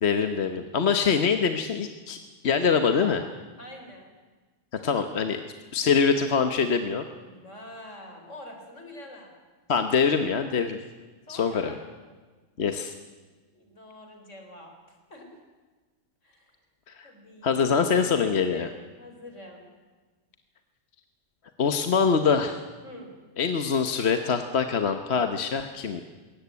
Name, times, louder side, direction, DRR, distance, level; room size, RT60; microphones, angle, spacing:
voice 1, 0.0-2.2 2.4-3.2 4.7-5.4 5.7-7.0 9.7-10.8 11.3-11.7 12.6-12.9 16.9-17.1 17.4-18.7 21.6-22.6 23.4-26.0, left 6 dB, 60° left, 8 dB, 1.3 m, -24 dB
voice 2, 3.6-4.1 7.2-9.3 11.3-12.2 13.5-15.3 16.2-16.5 17.0-18.0 18.5-18.7 19.0-19.7 22.8-23.1, left 1 dB, 80° left, 4 dB, 4.4 m, -46 dB
21.0 x 17.5 x 9.5 m, 1.3 s
omnidirectional pair, 1.2 m